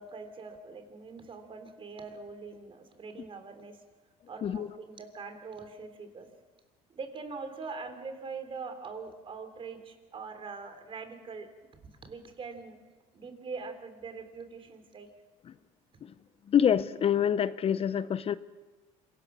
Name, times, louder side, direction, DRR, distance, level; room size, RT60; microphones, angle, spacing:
voice 1, 0.0-3.8 4.3-6.3 6.9-11.5 12.0-12.8 13.1-15.1, right 4 dB, 40° right, 8 dB, 3.4 m, -43 dB
voice 2, 16.5-18.3, left 9 dB, 40° left, 15 dB, 0.7 m, -26 dB
26.0 x 17.0 x 6.2 m, 1.2 s
supercardioid pair, 90°, 14 cm